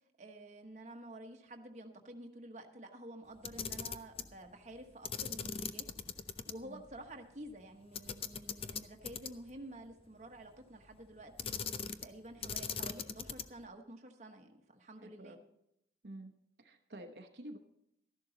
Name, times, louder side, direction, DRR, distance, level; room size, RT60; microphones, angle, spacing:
voice 1, 0.2-5.9 6.3-15.4, right 1 dB, 40° right, 3 dB, 1.1 m, -50 dB
Camera, 3.4-4.3 5.0-6.5 6.9-7.0 7.9-9.5 11.4-12.1 12.4-13.6, left 6 dB, 30° left, 0.5 m, -40 dB
voice 2, 15.0-15.4 16.0-17.6, right 1 dB, 70° right, 4 dB, 0.9 m, -50 dB
13.0 x 11.0 x 3.9 m, 0.78 s
head